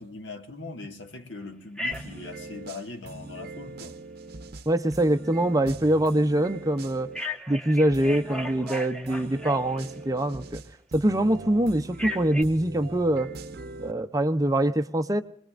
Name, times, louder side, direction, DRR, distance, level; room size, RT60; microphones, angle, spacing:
voice 1, 0.0-4.0, left 3 dB, 70° left, 1.9 m, -40 dB
Telephone, 1.8-2.3 7.1-10.0 11.9-12.4, left 1 dB, 5° left, 1.2 m, -35 dB
sound 1, 1.9-7.3 7.9-13.9, right 3 dB, 55° right, 0.8 m, -41 dB
voice 2, 4.7-7.1 7.5-10.6 10.9-13.3 13.8-15.2, right 1 dB, 20° right, 0.6 m, -24 dB
26.0 x 20.5 x 2.5 m
head